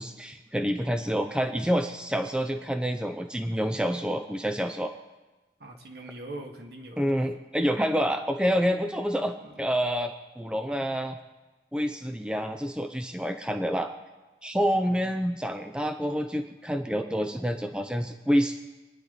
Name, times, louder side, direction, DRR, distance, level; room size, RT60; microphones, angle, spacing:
voice 1, 0.0-4.9 7.0-11.2 11.7-13.9 14.4-18.6, equal, 5° right, 6 dB, 0.6 m, -28 dB
voice 2, 5.6-7.2 9.4-9.6 14.9-15.1, right 1 dB, 70° right, 1 dB, 2.2 m, -42 dB
26.5 x 10.0 x 4.1 m, 1.1 s
head